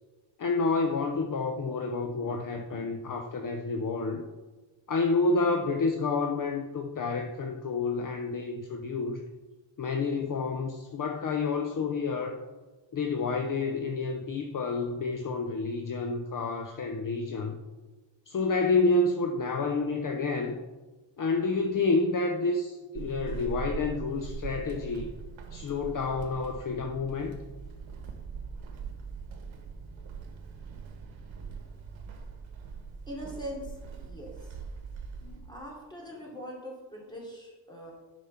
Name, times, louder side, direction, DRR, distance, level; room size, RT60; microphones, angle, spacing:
voice 1, 0.4-4.2 4.9-9.2 9.8-12.4 12.9-17.6 18.3-20.6 21.2-25.1 25.5-27.4 35.2-35.4, left 3 dB, 45° left, 4 dB, 0.8 m, -29 dB
Walk footsteps / Squeak, 23.0-35.6, right 5 dB, 80° right, 1.3 m, -41 dB
voice 2, 33.1-34.5 35.5-37.9, equal, 10° left, -3 dB, 3.0 m, -42 dB
10.5 x 5.0 x 5.8 m, 1.3 s
cardioid pair, 120°, 47 cm